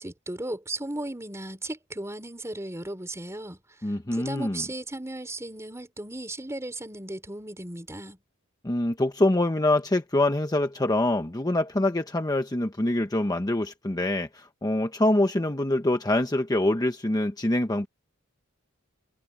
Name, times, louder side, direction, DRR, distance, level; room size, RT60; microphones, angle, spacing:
voice 1, 0.0-3.6 4.1-8.2, right 1 dB, 15° right, 4.0 m, -36 dB
voice 2, 3.8-4.6 8.6-17.9, left 1 dB, 20° left, 0.9 m, -25 dB
head